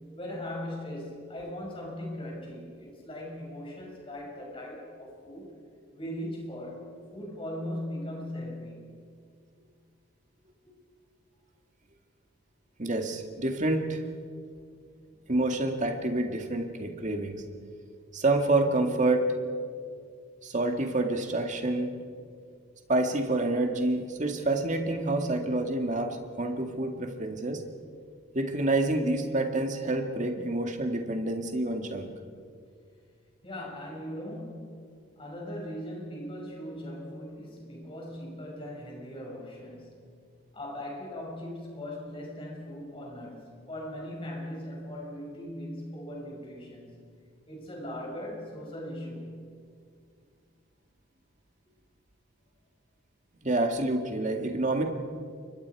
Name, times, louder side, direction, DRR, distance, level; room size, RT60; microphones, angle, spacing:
voice 1, 0.1-5.5 5.9-8.9 10.6-10.7 15.1-15.2 33.4-40.0 40.5-46.9 47.5-49.5, left 1 dB, 25° left, -2 dB, 6.2 m, -39 dB
voice 2, 12.8-14.0 15.3-17.4 18.1-19.3 20.4-21.9 22.9-27.6 28.3-32.1 53.4-54.8, right 2 dB, 40° right, 4 dB, 2.1 m, -28 dB
29.5 x 24.5 x 4.8 m, 2.2 s
head